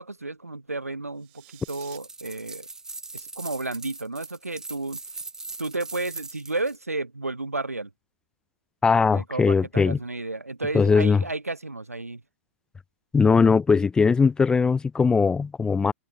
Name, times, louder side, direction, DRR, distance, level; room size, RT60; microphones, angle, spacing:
voice 1, 0.0-2.7 3.1-5.0 5.6-7.9 9.1-12.2, right 2 dB, 85° right, 3.0 m, -32 dB
sound 1, 1.1-2.0, right 24 dB, 40° right, 7.7 m, -51 dB
sound 2, 1.7-6.8, right 3 dB, 5° right, 5.2 m, -40 dB
voice 2, 8.8-10.0 10.7-11.2 13.1-15.9, left 5 dB, 10° left, 0.6 m, -20 dB
figure-of-eight pair, 110°, 8 cm